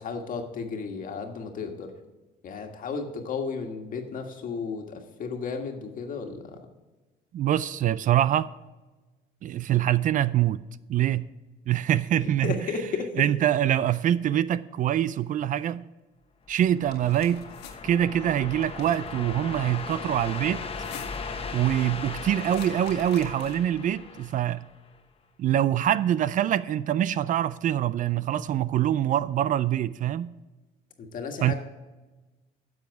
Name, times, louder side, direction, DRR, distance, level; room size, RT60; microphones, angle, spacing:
voice 1, 0.0-1.9 2.4-6.6 12.4-13.1 31.0-31.5, left 5 dB, 55° left, 1.6 m, -33 dB
voice 2, 7.3-8.5 9.4-10.6 10.9-11.3 11.7-12.7 13.2-15.8 16.5-17.4 17.8-20.6 21.5-24.7 25.4-30.3 31.4-31.5, right 11 dB, 50° right, 0.4 m, -24 dB
sound 1, 16.5-25.0, left 4 dB, 35° left, 1.1 m, -38 dB
sound 2, 16.8-17.8 18.6-19.1 20.6-21.3 22.4-23.8, left 7 dB, 75° left, 1.6 m, -47 dB
10.5 x 7.2 x 4.7 m
cardioid pair, 110°, 17 cm